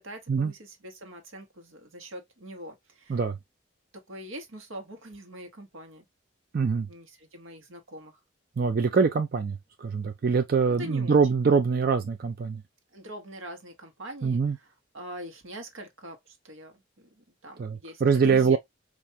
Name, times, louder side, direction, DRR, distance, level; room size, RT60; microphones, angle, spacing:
voice 1, 0.0-3.2 3.9-6.1 6.8-8.2 10.7-11.2 12.9-14.4 14.9-18.6, equal, 85° right, 1.1 m, -43 dB
voice 2, 6.5-6.9 8.6-12.6 14.2-14.6 17.6-18.6, right 5 dB, 50° right, 0.4 m, -24 dB
4.6 x 2.5 x 2.6 m
head